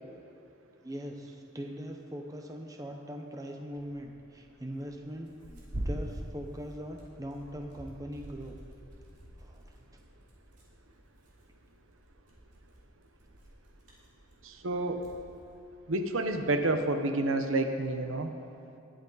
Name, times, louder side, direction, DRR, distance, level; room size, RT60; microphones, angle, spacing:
voice 1, 0.8-8.6 9.4-9.9, equal, 15° right, 3 dB, 0.9 m, -41 dB
Tearing, 3.7-16.3, right 1 dB, 40° right, 2.8 m, -45 dB
voice 2, 14.4-15.0 15.9-18.3, right 2 dB, 90° right, 6 dB, 0.9 m, -29 dB
20.5 x 8.0 x 4.1 m, 2.7 s
head